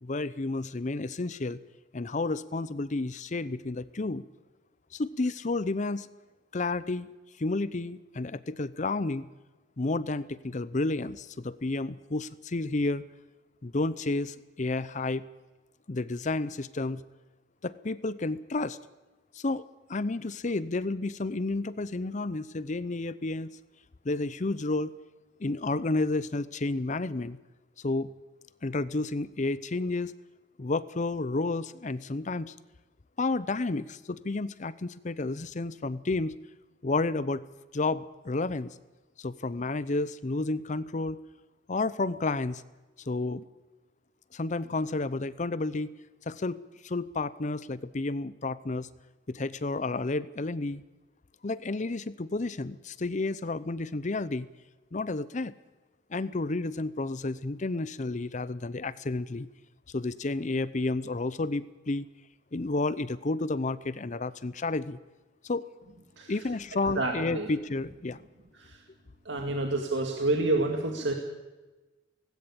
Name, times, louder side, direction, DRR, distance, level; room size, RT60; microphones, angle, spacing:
voice 1, 0.0-1.6 1.9-4.2 4.9-6.1 6.5-7.1 7.4-9.3 9.8-13.0 13.6-15.2 15.9-17.0 17.6-18.8 19.3-19.6 19.9-23.5 24.0-24.9 25.4-27.4 27.8-28.1 28.6-30.1 30.6-32.5 33.2-36.4 36.8-37.4 37.7-38.7 39.2-41.2 41.7-42.6 43.1-43.5 44.3-45.9 46.3-46.6 46.8-48.9 49.3-50.8 51.4-54.5 54.9-55.5 56.1-59.5 59.9-62.0 62.5-65.0 65.4-65.7 66.3-68.2, left 2 dB, 40° left, 17 dB, 0.6 m, -31 dB
voice 2, 67.0-67.5 68.6-68.8 69.3-71.1, right 2 dB, 70° right, 2 dB, 2.1 m, -28 dB
18.0 x 16.5 x 8.6 m, 1.2 s
head